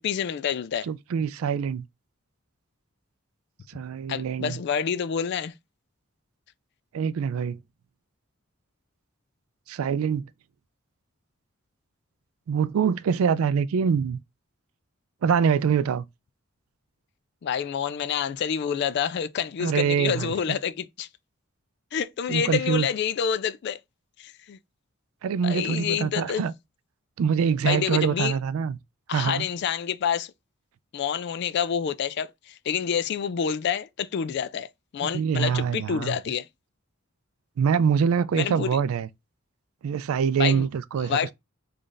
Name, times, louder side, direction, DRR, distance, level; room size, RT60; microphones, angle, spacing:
voice 1, 0.0-0.9 4.1-5.5 17.4-21.1 21.9-23.8 24.2-24.6 25.4-26.4 27.6-28.3 29.1-30.3 30.9-34.7 34.9-36.5 38.3-38.7 40.4-40.7 41.0-41.3, left 8 dB, 55° left, 0.3 m, -28 dB
voice 2, 0.9-1.8 3.7-4.6 6.9-7.6 9.7-10.3 12.5-14.2 15.2-16.0 19.6-20.6 22.3-22.9 25.2-26.5 27.2-28.8 29.1-29.5 35.0-36.2 37.6-39.1 39.8-41.2, right 7 dB, 85° right, 0.3 m, -24 dB
3.2 x 2.5 x 3.8 m
head